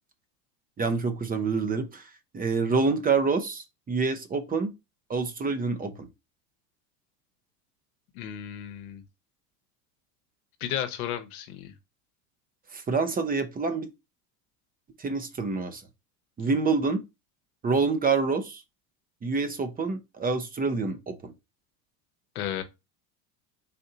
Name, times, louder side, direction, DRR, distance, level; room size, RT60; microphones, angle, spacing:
voice 1, 0.8-2.0 2.3-4.7 5.1-6.1 12.7-13.9 15.0-15.8 16.4-17.0 17.6-18.6 19.2-21.3, right 4 dB, 20° right, 0.7 m, -27 dB
voice 2, 8.1-9.0 10.6-11.7 22.3-22.6, left 10 dB, 80° left, 1.0 m, -33 dB
4.1 x 2.7 x 4.0 m
supercardioid pair, 100°, 43 cm